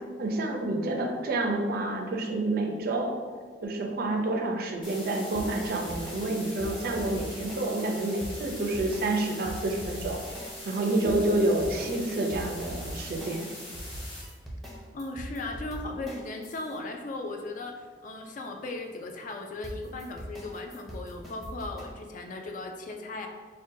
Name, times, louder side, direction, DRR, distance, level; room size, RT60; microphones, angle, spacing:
voice 1, 0.2-3.1 3.6-10.2 10.6-13.5, right 2 dB, 55° right, 2 dB, 0.4 m, -28 dB
sound 1, 4.8-14.2, left 1 dB, 30° left, 1.1 m, -43 dB
sound 2, 5.4-7.9 8.2-10.8 11.1-16.8 19.6-21.8, equal, ahead, 0.6 m, -41 dB
voice 2, 14.9-23.3, left 2 dB, 45° left, 4 dB, 0.3 m, -37 dB
5.1 x 2.2 x 2.6 m, 1.5 s
head